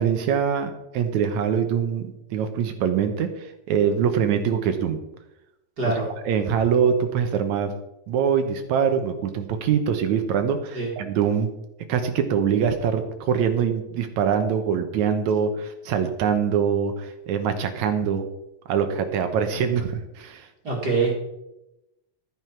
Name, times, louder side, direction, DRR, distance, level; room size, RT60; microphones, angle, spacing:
voice 1, 0.0-5.0 5.8-5.9 6.3-7.7 8.1-11.5 11.9-18.3 18.7-20.5, right 7 dB, 75° right, 7 dB, 2.2 m, -23 dB
voice 2, 5.8-6.1 10.7-10.9 20.6-21.1, right 3 dB, 35° right, -2 dB, 2.3 m, -24 dB
12.5 x 9.3 x 4.5 m, 0.91 s
omnidirectional pair, 3.5 m